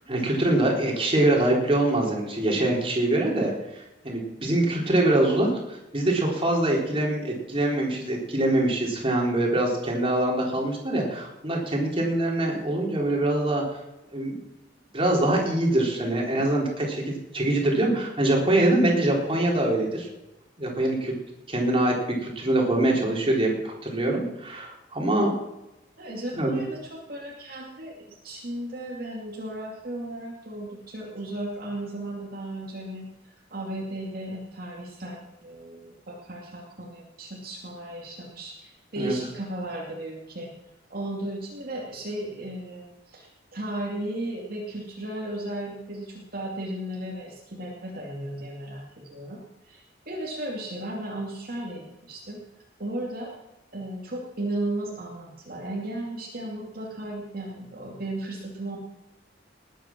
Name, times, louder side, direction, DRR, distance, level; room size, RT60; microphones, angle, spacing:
voice 1, 0.1-13.6 14.1-14.4 14.9-20.1 20.6-21.1 21.5-25.3 26.4-26.6 39.0-39.1, right 1 dB, 30° right, -1 dB, 3.8 m, -24 dB
voice 2, 26.0-33.1 33.5-40.5 40.9-48.8 49.1-52.4 52.8-53.3 53.7-58.8, right 1 dB, 50° right, -3 dB, 2.6 m, -35 dB
20.0 x 9.2 x 6.0 m, 0.95 s
head